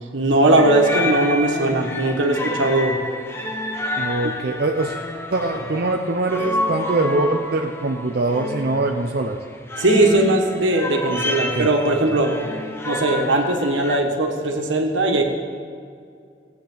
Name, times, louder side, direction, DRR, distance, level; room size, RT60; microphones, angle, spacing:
voice 1, 0.1-3.0 9.8-12.3 12.8-15.2, right 2 dB, 85° right, 2 dB, 1.6 m, -19 dB
sound 1, 0.6-14.0, left 1 dB, 15° left, 0.7 m, -29 dB
voice 2, 4.0-5.0 5.3-9.4 11.5-11.7, right 2 dB, 55° right, 2 dB, 0.6 m, -23 dB
17.5 x 8.6 x 3.9 m, 2.3 s
head